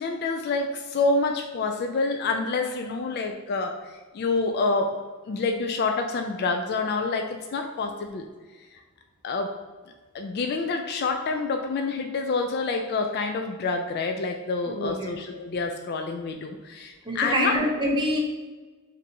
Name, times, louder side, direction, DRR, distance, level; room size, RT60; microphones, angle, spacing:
voice 1, 0.0-5.0 5.3-8.3 9.2-9.5 10.1-17.5, left 3 dB, 50° left, 4 dB, 0.3 m, -27 dB
voice 2, 14.7-15.2 17.0-18.2, equal, 20° right, -2 dB, 0.7 m, -26 dB
5.2 x 2.6 x 2.8 m, 1.3 s
head